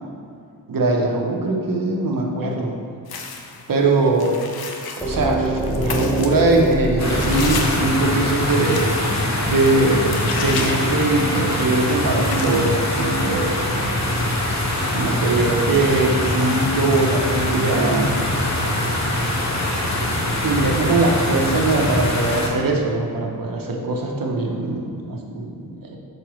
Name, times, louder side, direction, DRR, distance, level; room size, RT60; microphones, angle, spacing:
voice 1, 0.7-2.7 3.7-4.4 5.0-8.8 9.4-13.6 14.9-18.2 20.4-26.0, right 2 dB, 65° right, 0 dB, 0.9 m, -21 dB
sound 1, 3.1-3.7 4.2-11.5 11.8-11.9 12.1-12.6, left 4 dB, 80° left, 0.6 m, -33 dB
sound 2, 5.0-8.9, right 1 dB, 5° left, 0.7 m, -25 dB
sound 3, 7.0-22.5, left 1 dB, 50° left, 0.9 m, -23 dB
6.5 x 4.8 x 3.1 m, 2.2 s
wide cardioid pair, 105°, 37 cm